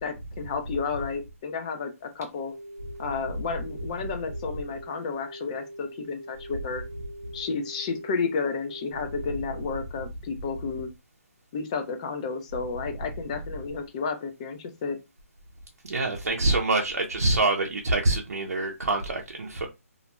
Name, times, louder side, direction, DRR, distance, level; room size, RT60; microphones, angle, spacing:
voice 1, 0.0-2.5 3.0-6.8 7.3-10.9 11.5-15.0, left 5 dB, 25° left, 0.4 m, -32 dB
sound 1, 2.4-9.8, right 1 dB, 30° right, 0.5 m, -43 dB
voice 2, 15.9-19.7, right 2 dB, 90° right, 0.6 m, -25 dB
2.5 x 2.1 x 2.9 m
hypercardioid pair, 160°, 8 cm